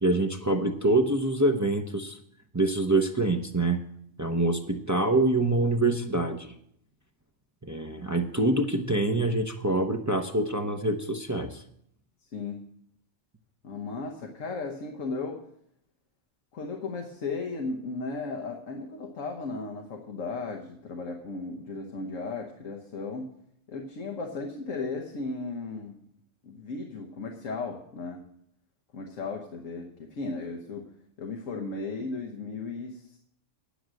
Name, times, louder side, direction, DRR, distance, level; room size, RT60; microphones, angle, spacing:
voice 1, 0.0-2.2 2.5-3.9 4.2-6.5 7.6-11.6, right 2 dB, 20° right, 5 dB, 0.5 m, -25 dB
voice 2, 13.6-15.4 16.5-23.3 23.7-26.0 26.4-28.2 28.9-30.9 31.2-33.2, left 3 dB, 90° left, 2 dB, 1.5 m, -35 dB
10.0 x 6.3 x 7.6 m, 0.70 s
omnidirectional pair, 1.3 m